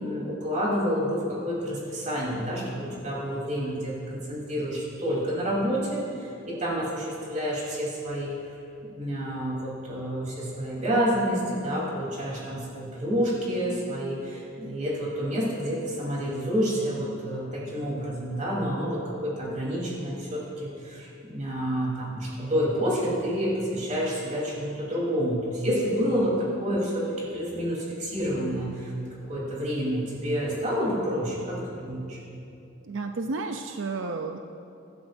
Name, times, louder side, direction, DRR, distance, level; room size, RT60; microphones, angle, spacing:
voice 1, 0.0-8.3 9.0-28.9 29.3-32.2, equal, 40° right, -6 dB, 3.7 m, -29 dB
voice 2, 32.8-34.4, right 3 dB, 80° right, 5 dB, 0.6 m, -32 dB
25.5 x 12.0 x 2.7 m, 2.7 s
head